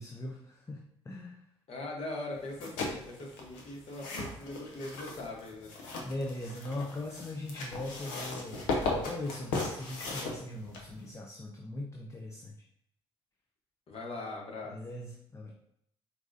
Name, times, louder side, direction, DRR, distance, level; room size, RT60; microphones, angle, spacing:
voice 1, 0.0-1.4 6.0-12.6 14.6-15.5, left 1 dB, 20° left, 0 dB, 0.6 m, -40 dB
voice 2, 1.7-5.7 13.9-14.8, left 2 dB, 45° left, -1 dB, 1.1 m, -41 dB
sound 1, 2.4-11.1, left 3 dB, 70° left, 0.8 m, -37 dB
4.5 x 2.7 x 2.6 m, 0.73 s
figure-of-eight pair, 45°, 14 cm